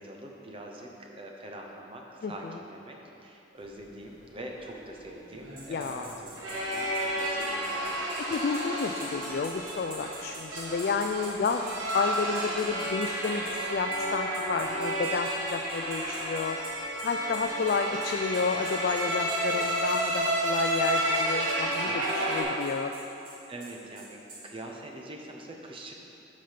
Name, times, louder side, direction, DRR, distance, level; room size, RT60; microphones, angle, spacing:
voice 1, 0.0-8.0 17.4-17.5 21.8-22.0 23.5-25.9, right 1 dB, 30° right, 1 dB, 0.8 m, -44 dB
voice 2, 2.2-2.6 5.7-6.1 8.3-16.6 17.0-22.9, left 4 dB, 55° left, 5 dB, 0.3 m, -31 dB
sound 1, 4.7-22.4, right 1 dB, 85° right, 1.6 m, -31 dB
sound 2, 5.6-13.6 13.9-14.0 14.3-24.4, right 3 dB, 50° right, 1.9 m, -46 dB
8.4 x 5.2 x 5.7 m, 2.9 s
head